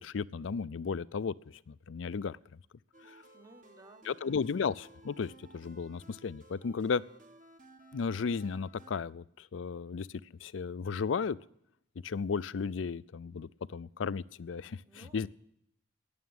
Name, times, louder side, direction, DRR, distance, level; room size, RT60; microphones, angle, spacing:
voice 1, 0.0-1.3 1.7-2.4 4.1-7.0 7.9-10.1 10.4-11.4 12.0-15.3, left 5 dB, 85° left, 19 dB, 0.5 m, -34 dB
sound 1, 2.9-8.9, right 1 dB, 45° right, 1.5 m, -57 dB
voice 2, 3.3-4.3 14.8-15.3, right 2 dB, 20° right, 9 dB, 1.0 m, -57 dB
18.5 x 7.1 x 9.5 m, 0.79 s
head